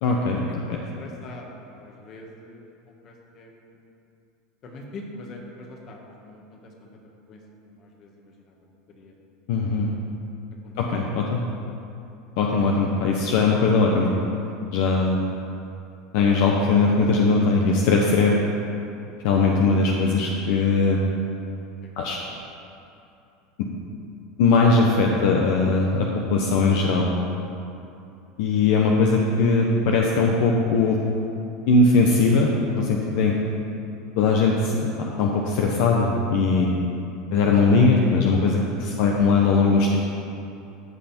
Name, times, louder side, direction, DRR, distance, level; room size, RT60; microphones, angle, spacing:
voice 1, 0.0-0.8 9.5-9.9 10.8-11.4 12.4-14.1 14.7-15.2 16.1-18.4 19.2-21.0 22.0-22.2 23.6-23.7 24.4-27.1 28.4-31.0 31.7-33.3 34.2-36.7 37.3-40.0, left 3 dB, 70° left, 0 dB, 0.9 m, -20 dB
voice 2, 0.7-3.8 4.6-6.9 7.3-8.6 9.0-9.1 10.6-11.0 14.4-14.6 22.0-22.4 39.2-39.3, left 2 dB, 45° left, 1 dB, 1.8 m, -44 dB
14.5 x 5.6 x 4.5 m, 2.7 s
supercardioid pair, 110°, 0 cm